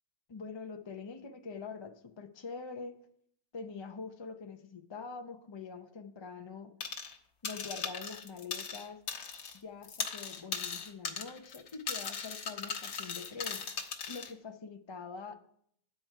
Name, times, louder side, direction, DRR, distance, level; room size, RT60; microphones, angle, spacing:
voice 1, 0.3-3.0 3.5-6.7 7.4-9.0 9.5-13.6 14.1-15.3, left 4 dB, 45° left, 6 dB, 0.3 m, -44 dB
sound 1, 6.8-7.2 7.4-9.6 9.8-14.3, left 6 dB, 80° left, 1.4 m, -38 dB
9.4 x 4.6 x 6.6 m, 0.67 s
omnidirectional pair, 1.5 m